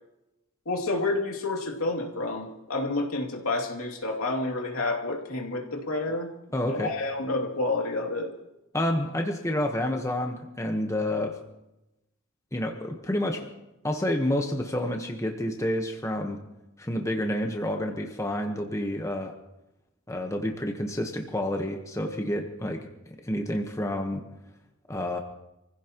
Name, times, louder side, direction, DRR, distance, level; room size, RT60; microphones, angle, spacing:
voice 1, 0.7-6.3 6.7-8.3, left 2 dB, 85° left, 1 dB, 2.7 m, -29 dB
voice 2, 6.5-6.9 8.7-11.4 12.5-13.5 13.8-16.4 16.8-19.3 20.1-22.9 23.2-24.2 24.9-25.2, left 1 dB, 15° left, 3 dB, 1.2 m, -29 dB
27.5 x 16.0 x 3.0 m, 0.93 s
head